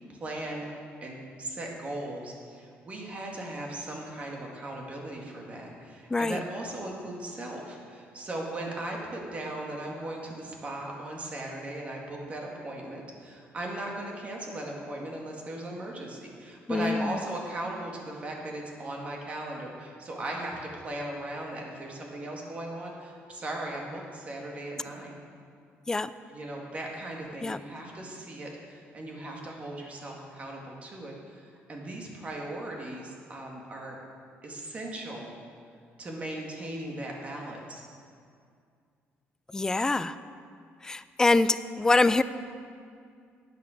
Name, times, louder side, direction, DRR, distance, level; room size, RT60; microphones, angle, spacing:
voice 1, 0.1-0.7 1.0-25.2 26.3-34.0 34.4-35.3 36.0-37.8, right 1 dB, 30° right, -1 dB, 2.1 m, -38 dB
voice 2, 6.1-6.4 16.7-17.2 25.9-26.1 27.4-27.6 39.5-40.2 40.8-42.2, left 3 dB, 15° left, 14 dB, 0.4 m, -25 dB
10.5 x 9.3 x 6.5 m, 2.3 s
cardioid pair, 135°, 4 cm